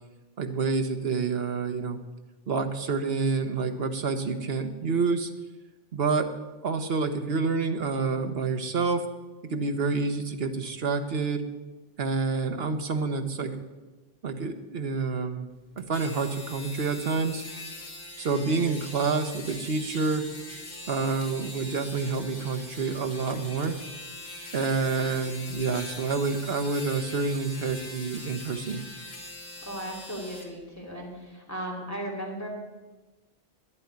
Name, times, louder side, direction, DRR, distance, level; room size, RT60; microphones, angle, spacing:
voice 1, 0.4-2.0 2.5-5.3 5.9-6.3 6.6-9.1 9.5-11.4 12.0-13.5 14.2-15.5 15.8-17.4 18.2-20.2 20.9-23.8 24.5-28.8, right 4 dB, 70° right, 7 dB, 1.3 m, -28 dB
Electric razor, 15.8-30.5, left 1 dB, 55° left, 2.5 m, -42 dB
voice 2, 29.6-32.5, right 1 dB, 15° left, -2 dB, 2.8 m, -36 dB
10.5 x 7.7 x 9.7 m, 1.2 s
omnidirectional pair, 1.1 m